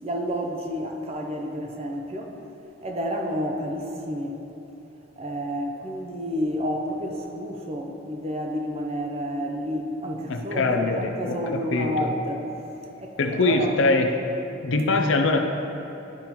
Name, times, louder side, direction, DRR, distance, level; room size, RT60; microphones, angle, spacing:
voice 1, 0.0-2.3 2.8-4.4 5.2-12.5 13.0-13.7, equal, 30° right, 2 dB, 0.5 m, -30 dB
voice 2, 10.3-12.1 13.2-14.1 14.6-15.4, left 3 dB, 70° left, 4 dB, 0.5 m, -23 dB
10.5 x 5.3 x 3.0 m, 3.0 s
head